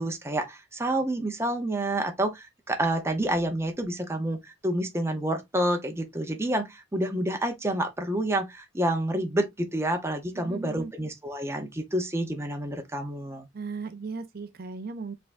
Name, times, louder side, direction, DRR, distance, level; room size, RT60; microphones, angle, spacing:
voice 1, 0.0-13.5, right 1 dB, 15° right, 0.8 m, -28 dB
voice 2, 10.3-10.9 13.5-15.1, right 4 dB, 50° right, 0.6 m, -37 dB
5.4 x 3.5 x 2.6 m
head